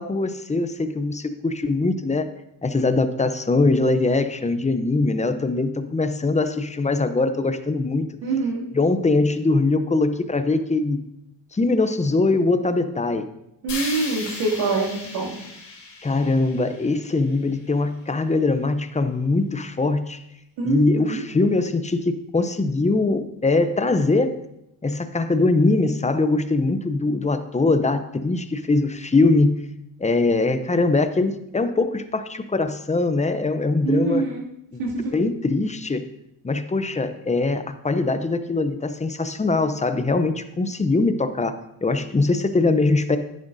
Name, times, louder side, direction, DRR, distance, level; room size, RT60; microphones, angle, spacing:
voice 1, 0.0-2.3 2.6-8.1 8.7-11.0 11.5-13.3 16.0-20.2 20.6-24.4 24.8-29.5 30.0-34.2 34.7-34.8 35.1-36.0 36.4-43.2, left 3 dB, 15° left, 10 dB, 0.6 m, -22 dB
voice 2, 8.2-8.6 13.6-15.4 20.6-21.2 33.8-34.4 34.8-35.1, right 3 dB, 85° right, -4 dB, 2.6 m, -25 dB
sound 1, 13.7-17.8, left 3 dB, 55° left, 3.2 m, -36 dB
10.0 x 9.8 x 2.6 m, 0.82 s
cardioid pair, 90°, 48 cm